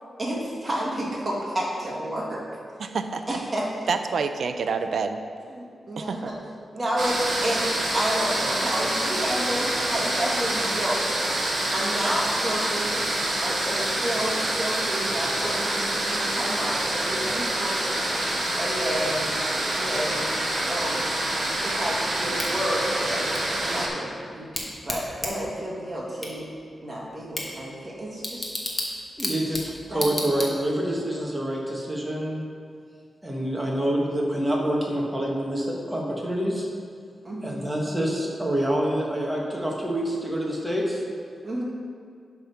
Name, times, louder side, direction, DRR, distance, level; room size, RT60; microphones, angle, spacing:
voice 1, 0.2-2.4 3.2-3.9 5.5-6.2 6.7-11.0 11.7-13.0 13.4-18.0 18.6-19.3 19.8-20.3 20.7-21.0 21.6-23.3 23.6-26.5 26.8-28.5 29.9-30.4 37.2-37.6 41.4-41.6, right 1 dB, 25° right, -5 dB, 1.8 m, -30 dB
voice 2, 2.8-3.4 3.9-5.2 6.0-6.3, right 5 dB, 70° right, 8 dB, 0.5 m, -28 dB
sound 1, 7.0-23.9, right 1 dB, 50° right, 1.6 m, -27 dB
Bicycle / Tick, 22.4-30.9, left 1 dB, 25° left, 1.2 m, -35 dB
voice 3, 29.2-32.4 33.2-36.7 37.4-41.0, right 1 dB, 10° right, -2 dB, 1.3 m, -27 dB
10.5 x 3.6 x 5.7 m, 2.2 s
wide cardioid pair, 140°, 0 cm